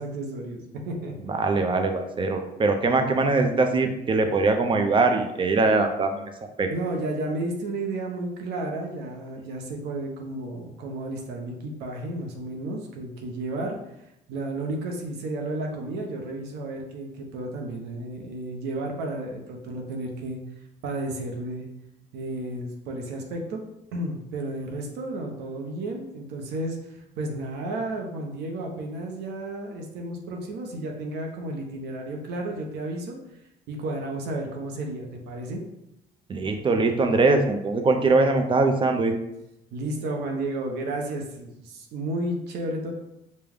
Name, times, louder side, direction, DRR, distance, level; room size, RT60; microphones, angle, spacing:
voice 1, 0.0-1.3 6.7-13.8 14.3-20.4 20.8-21.7 22.1-23.6 23.9-33.2 33.7-35.6 39.7-42.9, right 2 dB, 80° right, 1 dB, 0.8 m, -32 dB
voice 2, 1.3-6.2 6.6-6.7 36.3-39.1, right 3 dB, 30° right, 5 dB, 0.6 m, -22 dB
5.2 x 2.2 x 3.5 m, 0.85 s
cardioid pair, 110°, 17 cm